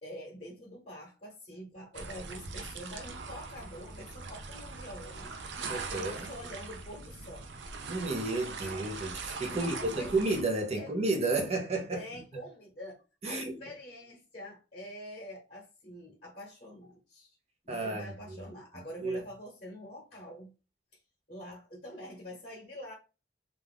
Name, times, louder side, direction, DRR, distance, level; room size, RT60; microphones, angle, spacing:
voice 1, 0.0-5.4 5.9-7.5 9.5-10.1 10.8-10.9 11.9-17.4 17.6-20.5 21.3-22.9, left 1 dB, 40° left, 1.0 m, -46 dB
sound 1, 1.9-10.4, right 4 dB, 85° right, 0.5 m, -41 dB
voice 2, 5.7-6.3 7.9-12.0 13.2-13.6 17.7-18.5 19.0-19.2, right 2 dB, 35° right, 0.6 m, -32 dB
2.5 x 2.3 x 3.4 m
head